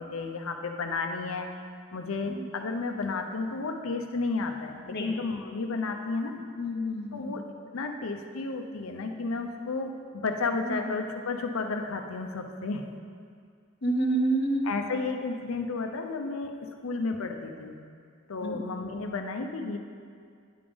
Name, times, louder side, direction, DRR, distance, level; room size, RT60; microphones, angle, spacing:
voice 1, 0.0-1.5 1.9-6.4 7.1-12.8 14.6-16.5 16.8-17.8 18.3-19.8, left 3 dB, 80° left, 5 dB, 0.6 m, -32 dB
voice 2, 6.6-7.3 10.6-10.9 13.8-14.8 18.4-18.6, right 1 dB, 55° left, 0 dB, 0.8 m, -28 dB
9.9 x 3.5 x 5.1 m, 2.2 s
head